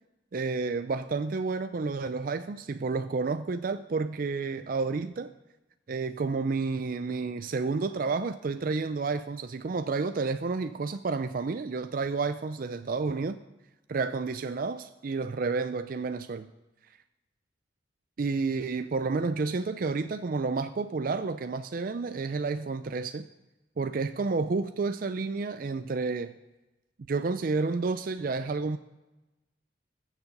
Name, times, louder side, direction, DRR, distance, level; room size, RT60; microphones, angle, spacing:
voice 1, 0.3-5.3 5.9-13.4 13.9-16.5 18.2-23.2 23.8-26.4 27.1-28.8, right 4 dB, 45° right, 0.4 m, -30 dB
20.5 x 7.3 x 5.2 m
head